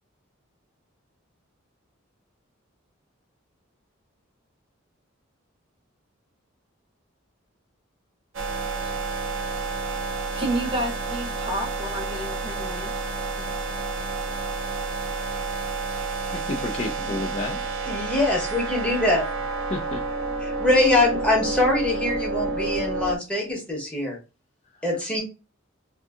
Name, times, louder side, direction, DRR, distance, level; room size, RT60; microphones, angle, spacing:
sound 1, 8.3-23.2, right 3 dB, 65° right, 0.5 m, -30 dB
voice 1, 10.4-12.9 13.4-13.5, right 1 dB, 25° right, 0.7 m, -30 dB
voice 2, 16.3-17.6 18.9-19.0 19.7-20.0 24.8-24.9, left 2 dB, 30° left, 0.3 m, -31 dB
voice 3, 17.9-19.3 20.4-24.2 24.8-25.2, left 2 dB, 5° left, 0.8 m, -23 dB
2.6 x 2.5 x 2.3 m
head